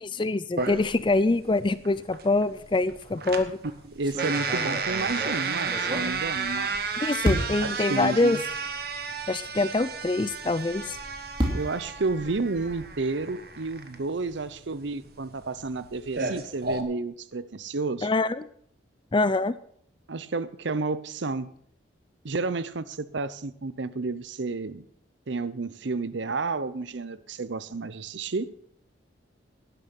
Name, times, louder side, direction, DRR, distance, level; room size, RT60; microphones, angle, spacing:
voice 1, 0.0-3.6 7.0-8.4 9.3-11.0 18.0-18.5 19.1-19.6, left 2 dB, 25° left, 16 dB, 0.4 m, -25 dB
sound 1, 0.6-16.8, right 4 dB, 50° right, 1.3 m, -33 dB
sound 2, 3.2-3.5 4.0-6.8 7.2-7.8 8.5-8.6 8.9-9.0 10.7-13.0, equal, 25° right, 2.5 m, -32 dB
voice 2, 3.9-6.8 7.6-8.4 11.5-18.1 20.1-21.5 22.2-24.8 25.3-28.5, right 3 dB, 70° right, 15 dB, 0.7 m, -31 dB
12.0 x 10.5 x 6.0 m, 0.64 s
head